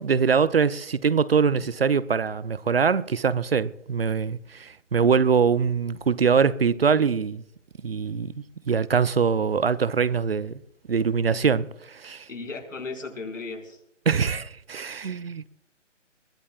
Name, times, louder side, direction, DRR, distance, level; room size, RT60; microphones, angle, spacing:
voice 1, 0.0-7.4 7.8-8.3 8.7-10.6 10.9-12.3 14.1-15.5, right 6 dB, 50° right, 0.6 m, -23 dB
voice 2, 12.3-13.8, left 3 dB, 90° left, 5.6 m, -36 dB
21.5 x 20.5 x 2.4 m
hypercardioid pair, 175°, 37 cm